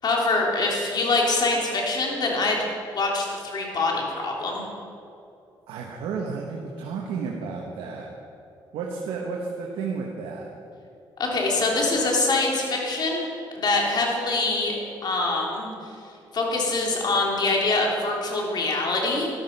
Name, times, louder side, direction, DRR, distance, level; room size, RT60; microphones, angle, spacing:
voice 1, 0.0-2.6 2.9-4.6 11.2-13.3 13.5-14.7 15.0-15.7 16.3-19.3, left 3 dB, 55° left, -1 dB, 3.4 m, -24 dB
voice 2, 5.7-8.1 8.7-10.5, right 5 dB, 90° right, -1 dB, 1.4 m, -32 dB
13.5 x 12.0 x 5.5 m, 2.6 s
cardioid pair, 85°, 9 cm